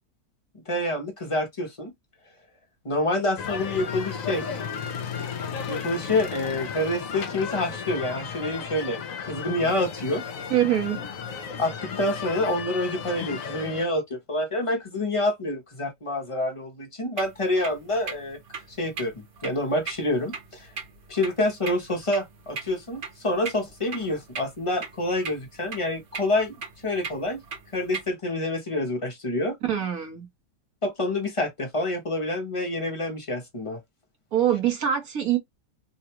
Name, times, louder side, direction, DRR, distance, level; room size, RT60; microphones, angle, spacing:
voice 1, 0.7-1.9 2.8-4.6 5.7-10.2 11.6-18.4 18.7-20.7 21.1-26.5 26.8-27.4 27.7-29.6 30.8-33.8, left 1 dB, 25° left, 0.7 m, -27 dB
sound 1, 3.4-13.9, left 6 dB, 60° left, 1.0 m, -34 dB
voice 2, 10.5-11.0 29.6-30.3 34.3-35.4, right 10 dB, 60° right, 1.6 m, -24 dB
sound 2, 17.2-28.1, right 5 dB, 80° right, 1.9 m, -40 dB
3.8 x 2.4 x 2.9 m
omnidirectional pair, 1.8 m